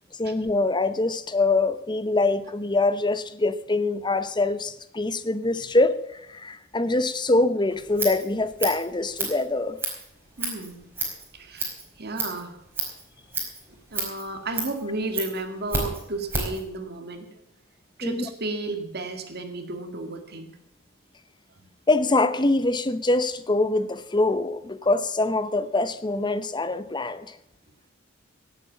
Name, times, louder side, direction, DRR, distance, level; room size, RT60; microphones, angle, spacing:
voice 1, 0.2-9.8 18.0-18.3 21.9-27.4, left 2 dB, 20° left, 12 dB, 0.8 m, -24 dB
Scissors, 7.7-16.6, right 3 dB, 10° right, 4.9 m, -33 dB
voice 2, 10.4-10.9 11.3-12.6 13.9-17.4 18.0-20.6 21.6-21.7, right 2 dB, 45° right, 6 dB, 2.0 m, -33 dB
17.5 x 8.5 x 7.3 m, 0.81 s
head